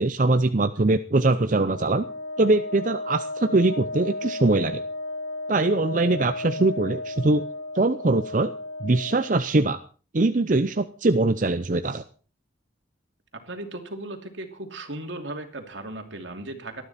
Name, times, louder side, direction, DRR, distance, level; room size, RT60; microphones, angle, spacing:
voice 1, 0.0-2.1 2.4-4.8 5.5-7.5 7.7-8.5 8.8-9.8 10.1-12.0, right 2 dB, 45° right, 10 dB, 0.6 m, -22 dB
Wind instrument woodwind instrument, 1.6-9.4, left 2 dB, 85° left, 2.9 m, -34 dB
voice 2, 13.4-16.8, right 2 dB, 75° right, 5 dB, 2.8 m, -36 dB
19.0 x 13.0 x 4.3 m, 0.39 s
head